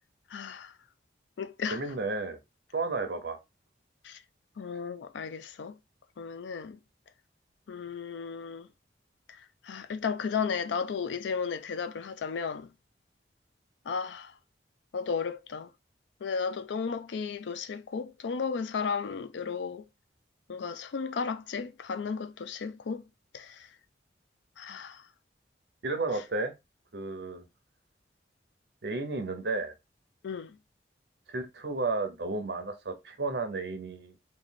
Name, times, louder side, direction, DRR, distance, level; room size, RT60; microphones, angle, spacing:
voice 1, 0.3-0.7 1.4-1.8 4.0-4.2 4.6-5.8 6.2-6.8 7.7-8.7 9.6-12.7 13.9-14.3 14.9-15.7 16.2-19.8 20.5-23.0 23.3-23.6 24.6-25.0 30.2-30.6, left 5 dB, 80° left, 0.4 m, -34 dB
voice 2, 1.7-2.4 2.7-3.4 25.8-26.5 26.9-27.5 28.8-29.7 31.3-34.2, right 3 dB, 60° right, 0.7 m, -32 dB
3.1 x 2.3 x 3.9 m
head